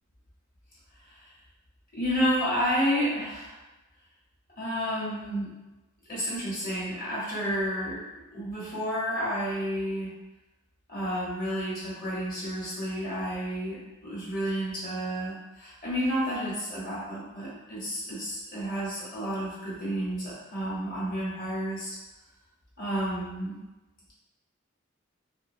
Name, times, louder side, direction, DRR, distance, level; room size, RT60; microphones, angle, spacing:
voice 1, 1.9-3.6 4.6-5.6 6.1-8.0 8.3-10.1 10.9-22.0 22.8-23.6, equal, 45° left, -7 dB, 1.1 m, -30 dB
2.5 x 2.2 x 2.6 m, 1.1 s
head